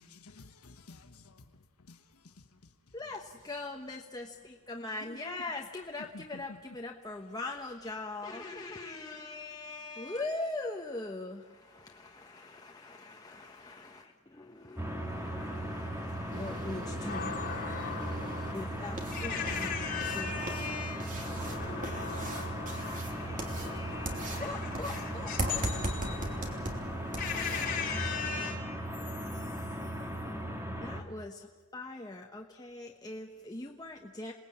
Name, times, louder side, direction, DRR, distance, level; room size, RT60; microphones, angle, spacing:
voice 1, 0.0-1.4 1.9-2.4 5.0-5.4, left 3 dB, 85° left, 1.3 m, -52 dB
voice 2, 2.9-26.9 29.3-29.8 30.6-34.3, left 2 dB, 15° left, 1.1 m, -42 dB
sound 1, 14.8-31.0, right 1 dB, 10° right, 1.9 m, -38 dB
sound 2, 16.3-27.7, right 1 dB, 35° right, 2.9 m, -40 dB
voice 3, 17.0-28.6, left 5 dB, 40° left, 4.5 m, -38 dB
28.0 x 19.5 x 8.7 m
head